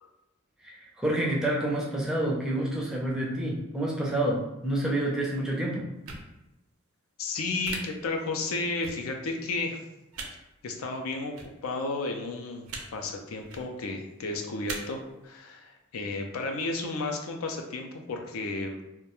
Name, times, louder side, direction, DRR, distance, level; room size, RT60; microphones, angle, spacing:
voice 1, 0.6-5.9, right 1 dB, 5° right, -3 dB, 0.4 m, -28 dB
sound 1, 6.0-6.2 7.6-7.8 8.8-8.9 10.1-10.3 11.3-11.5 12.7-12.8 13.4-13.6 14.7-14.8, right 4 dB, 85° right, 0.5 m, -37 dB
voice 2, 7.2-9.8 10.6-11.4 11.6-18.8, left 3 dB, 75° left, 4 dB, 0.4 m, -33 dB
2.3 x 2.1 x 2.9 m, 0.95 s
head